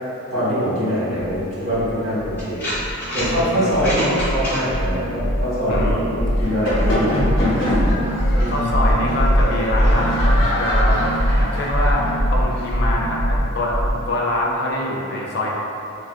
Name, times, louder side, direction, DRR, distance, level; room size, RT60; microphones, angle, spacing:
voice 1, 0.3-2.7 3.1-7.1 8.4-8.7, equal, 60° right, -12 dB, 1.4 m, -23 dB
sound 1, 1.3-1.4 1.7-2.4 2.7-3.4 3.7-14.0, equal, 10° right, 1.3 m, -21 dB
sound 2, 1.6-1.7 2.4-3.3 3.7-4.6, equal, 10° left, 1.0 m, -27 dB
voice 2, 5.7-6.1 8.5-10.2 10.5-11.0 11.4-13.8 14.1-15.5, left 1 dB, 50° left, -3 dB, 0.4 m, -24 dB
sound 3, 6.4-12.8, left 1 dB, 65° left, 0.9 m, -26 dB
3.4 x 2.3 x 2.2 m, 2.7 s
head